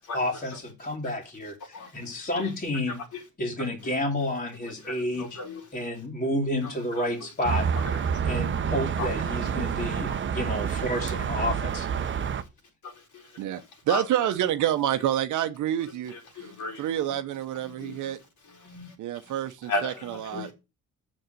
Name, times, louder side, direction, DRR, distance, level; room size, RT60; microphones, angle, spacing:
voice 1, 0.1-3.0 3.4-5.4 5.7-7.7 8.2-11.9, left 1 dB, 30° left, 2.4 m, -30 dB
voice 2, 1.7-2.1 2.4-2.5 2.9-3.2 3.8-3.9 4.6-5.7 6.6-7.1 8.2-8.3 9.0-9.1 10.1-10.2 12.8-14.3 16.1-16.9 17.8-18.0 18.6-18.9 19.7-20.5, left 3 dB, 75° left, 4.0 m, -36 dB
sound 1, 7.4-12.4, right 7 dB, 40° right, 0.8 m, -28 dB
voice 3, 13.4-16.5 16.8-18.2 19.0-20.5, right 11 dB, 80° right, 0.9 m, -28 dB
6.7 x 6.4 x 7.7 m
cardioid pair, 90°, 30 cm